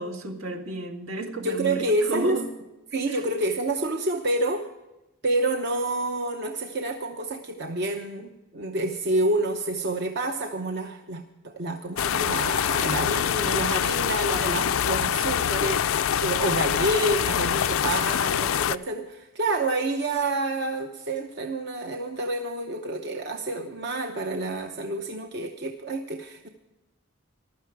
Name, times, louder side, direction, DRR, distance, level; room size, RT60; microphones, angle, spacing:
voice 1, 0.0-2.5 3.1-3.2 14.9-15.1, right 3 dB, 70° right, 4 dB, 2.0 m, -33 dB
voice 2, 1.4-2.4 2.9-4.7 5.2-26.5, right 2 dB, 50° right, 4 dB, 0.8 m, -28 dB
sound 1, 12.0-18.8, left 9 dB, 70° left, 0.4 m, -25 dB
15.0 x 12.5 x 4.8 m, 1.0 s
head